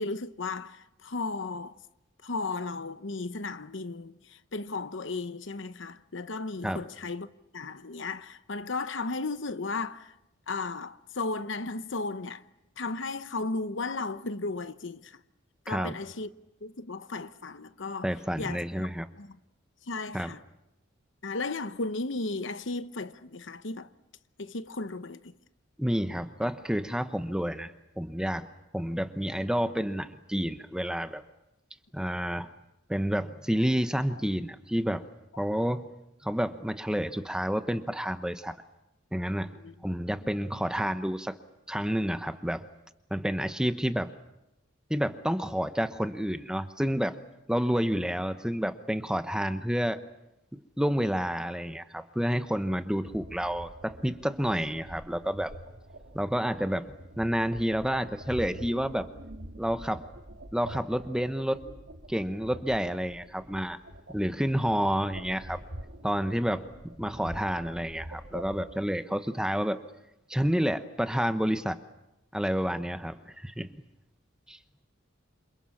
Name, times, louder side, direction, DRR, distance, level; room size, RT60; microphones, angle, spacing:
voice 1, 0.0-1.8 2.2-10.2 10.5-12.5 12.8-15.2 15.6-16.3 16.6-18.9 19.2-19.4 19.8-20.4 21.2-23.9 24.4-25.3 39.5-39.8, left 3 dB, 65° left, 1.0 m, -35 dB
voice 2, 18.0-19.1 20.1-20.3 25.8-28.5 28.7-31.2 31.9-32.5 32.9-35.0 35.4-35.9 36.2-38.6 39.1-39.5 39.8-41.4 41.7-42.7 43.1-44.1 44.9-47.2 47.5-50.0 50.5-55.5 56.1-59.1 59.6-60.0 60.5-61.6 62.1-63.8 64.1-65.6 66.0-69.8 70.3-71.8 72.3-73.8 74.5-74.6, equal, 5° right, 1.0 m, -29 dB
sound 1, 53.0-68.8, right 1 dB, 70° right, 2.5 m, -46 dB
28.5 x 27.0 x 7.3 m
head